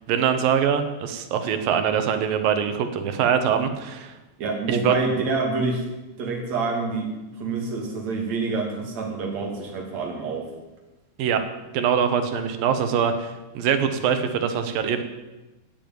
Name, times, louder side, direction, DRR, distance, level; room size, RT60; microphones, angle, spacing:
voice 1, 0.1-4.2 4.7-4.9 11.2-11.4 11.7-15.0, right 7 dB, 80° right, 8 dB, 3.0 m, -23 dB
voice 2, 4.4-5.8 6.2-7.1 7.4-10.5, right 4 dB, 50° right, 0 dB, 3.8 m, -26 dB
16.0 x 7.2 x 9.4 m, 1.1 s
omnidirectional pair, 4.0 m